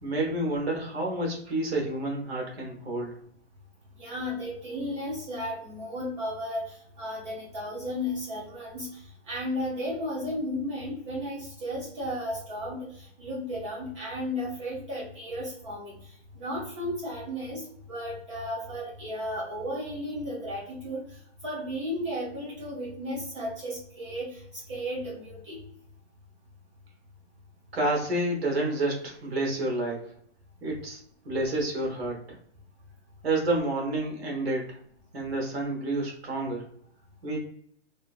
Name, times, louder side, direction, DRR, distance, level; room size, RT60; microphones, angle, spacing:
voice 1, 0.0-3.2 27.7-30.1 30.6-31.0 31.2-32.2 33.2-34.8 35.1-36.7 37.2-37.4, right 2 dB, 60° right, -1 dB, 1.2 m, -29 dB
voice 2, 4.0-21.0 21.4-24.4 24.7-25.6, equal, 25° right, -7 dB, 0.9 m, -34 dB
2.8 x 2.5 x 2.4 m, 0.64 s
hypercardioid pair, 165°, 35 cm